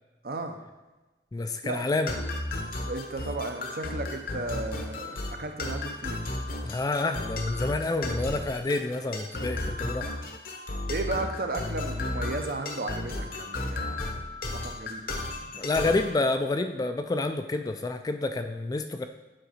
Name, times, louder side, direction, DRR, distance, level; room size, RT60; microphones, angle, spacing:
voice 1, 0.2-0.6 1.6-1.8 2.8-6.2 10.9-14.2 14.5-15.0, right 2 dB, 55° right, 5 dB, 0.7 m, -34 dB
voice 2, 1.3-2.1 6.6-10.1 15.5-19.0, left 2 dB, 20° left, 7 dB, 0.3 m, -28 dB
sound 1, 2.1-16.1, left 2 dB, 55° left, 0.8 m, -34 dB
7.7 x 3.8 x 5.0 m, 1.1 s
head